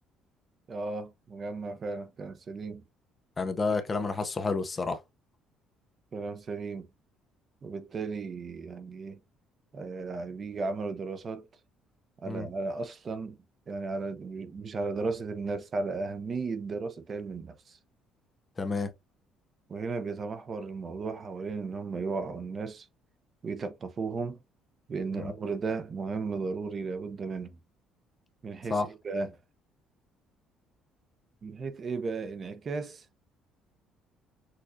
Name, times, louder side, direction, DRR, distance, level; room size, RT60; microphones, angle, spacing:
voice 1, 0.7-2.8 3.7-3.8 6.1-6.9 7.6-9.2 9.7-11.5 12.2-13.4 13.7-17.8 19.7-22.9 23.4-24.4 24.9-27.6 28.4-29.4 31.4-33.1, right 4 dB, 30° right, 0.6 m, -35 dB
voice 2, 3.4-5.0 12.3-12.5 18.6-18.9 25.1-25.3 28.7-28.9, left 4 dB, 20° left, 0.5 m, -30 dB
6.5 x 2.3 x 2.6 m
cardioid pair, 170°, 0 cm